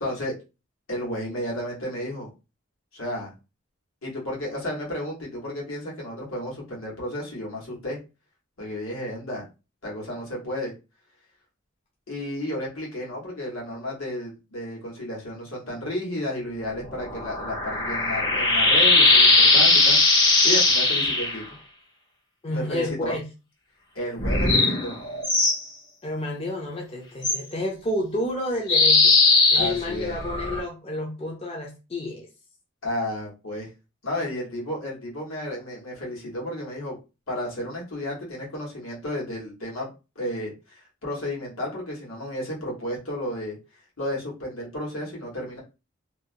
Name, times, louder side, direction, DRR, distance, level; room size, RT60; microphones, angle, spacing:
voice 1, 0.0-0.4 0.9-2.3 2.9-3.3 4.0-8.0 8.6-9.4 9.8-10.7 12.1-20.0 20.2-21.4 22.5-23.2 23.9-25.0 29.5-30.2 32.8-33.7 34.0-37.0 37.3-39.9 40.1-43.6 44.0-45.6, left 1 dB, 80° left, -4 dB, 1.3 m, -32 dB
sound 1, 16.9-21.4 24.2-25.6 27.2-27.4 28.7-30.6, left 3 dB, 60° left, 1.0 m, -19 dB
voice 2, 22.4-23.2 26.0-29.2 29.5-32.3, left 1 dB, 30° left, 0 dB, 0.5 m, -30 dB
2.7 x 2.1 x 2.6 m, 0.30 s
head